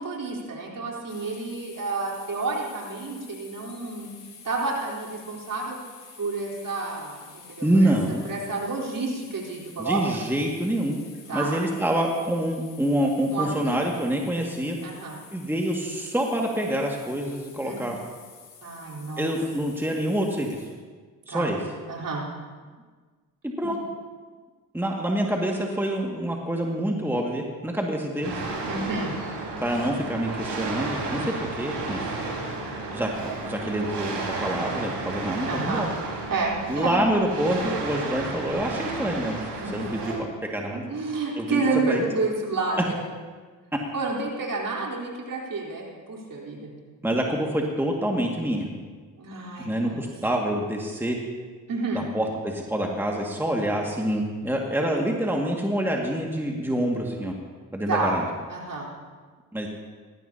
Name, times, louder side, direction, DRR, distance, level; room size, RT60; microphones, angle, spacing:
voice 1, 0.0-4.1 4.4-5.8 6.2-7.9 8.2-10.2 11.3-11.6 13.3-13.9 14.8-15.2 17.6-17.8 18.6-19.3 21.3-21.4 21.9-22.2 28.6-29.1 35.5-35.9 36.3-37.0 39.5-39.7 40.9-43.0 43.9-46.7 49.2-50.0 51.7-52.1 57.9-58.1 58.5-58.9, right 3 dB, 50° right, -3 dB, 4.0 m, -30 dB
sound 1, 1.1-20.7, left 6 dB, 70° left, 3.7 m, -49 dB
voice 2, 7.6-8.2 9.8-11.0 11.3-14.8 15.3-18.0 19.2-20.6 21.3-21.6 23.4-23.8 24.7-28.5 29.6-32.0 32.9-35.9 36.7-39.4 39.7-40.8 41.4-41.6 41.9-42.0 47.0-48.7 49.6-51.2 51.9-57.3 57.7-58.3 59.5-59.7, right 1 dB, 5° right, 0 dB, 2.0 m, -26 dB
sound 2, 28.2-40.2, right 3 dB, 65° right, 3.9 m, -32 dB
18.5 x 14.0 x 2.9 m, 1.5 s
hypercardioid pair, 45°, 43 cm